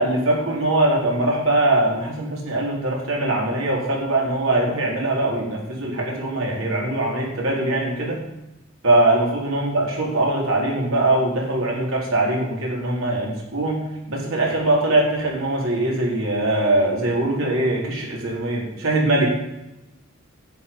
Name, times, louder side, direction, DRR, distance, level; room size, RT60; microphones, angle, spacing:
voice 1, 0.0-8.2 8.8-13.8 14.1-19.3, right 2 dB, 85° right, -3 dB, 4.0 m, -22 dB
10.5 x 9.4 x 5.5 m, 0.92 s
head